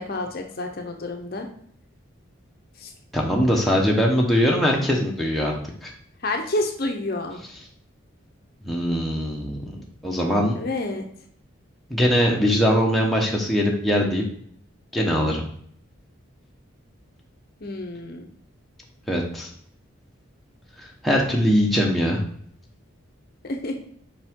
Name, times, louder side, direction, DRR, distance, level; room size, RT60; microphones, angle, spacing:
voice 1, 0.0-1.5 2.8-2.9 6.2-7.4 10.5-11.1 17.6-18.3 23.4-23.8, left 2 dB, 45° left, 4 dB, 0.7 m, -29 dB
voice 2, 3.1-5.5 5.8-5.9 8.6-9.8 10.0-10.5 11.9-14.2 14.9-15.4 19.1-19.5 20.8-22.2, equal, ahead, -2 dB, 0.9 m, -21 dB
5.5 x 4.8 x 3.6 m, 0.63 s
head